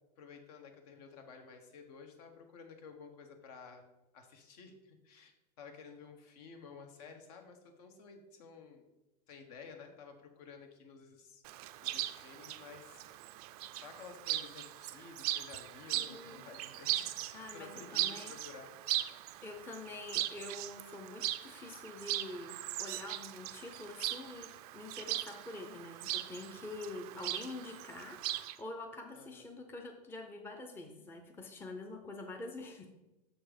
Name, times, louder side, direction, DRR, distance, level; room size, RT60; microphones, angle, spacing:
voice 1, 0.2-3.8 4.1-5.3 5.6-8.9 9.3-11.4 11.8-13.0 13.7-18.7 19.4-19.5 29.1-29.4, left 5 dB, 65° left, 5 dB, 1.3 m, -53 dB
Chirp tweet, 11.4-28.6, right 15 dB, 65° right, 0.4 m, -39 dB
voice 2, 16.0-16.5 17.3-18.3 19.4-28.2 28.6-32.9, left 2 dB, 10° left, 3 dB, 0.6 m, -46 dB
6.3 x 4.4 x 5.0 m, 0.99 s
supercardioid pair, 135°, 21 cm